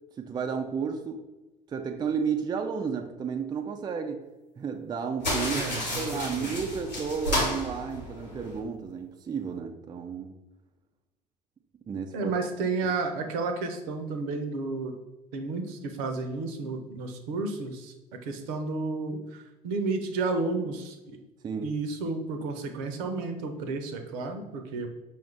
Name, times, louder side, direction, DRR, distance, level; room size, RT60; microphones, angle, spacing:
voice 1, 0.2-1.2 1.7-4.2 4.6-5.7 6.0-10.3 11.9-12.3 21.4-21.7, right 6 dB, 20° right, 4 dB, 0.4 m, -32 dB
sound 1, 5.2-8.6, left 1 dB, 90° left, 1.2 m, -31 dB
voice 2, 5.5-6.6 12.1-14.9 15.3-17.9 18.2-21.2 21.6-24.9, right 3 dB, 60° right, 6 dB, 0.7 m, -32 dB
5.3 x 2.4 x 3.3 m, 1.1 s
figure-of-eight pair, 65°, 21 cm